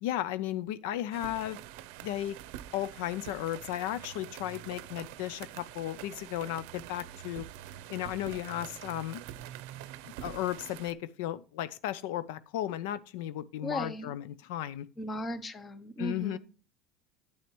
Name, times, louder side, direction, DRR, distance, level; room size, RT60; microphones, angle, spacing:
voice 1, 0.0-1.6 2.0-2.4 2.7-7.4 7.9-9.2 10.0-14.9 16.0-16.4, left 13 dB, 85° left, 0.5 m, -35 dB
sound 1, 1.1-10.9, right 12 dB, 75° right, 0.6 m, -45 dB
voice 2, 13.6-14.1 15.0-16.4, left 1 dB, 20° left, 0.8 m, -36 dB
9.2 x 8.6 x 3.0 m
cardioid pair, 145°, 0 cm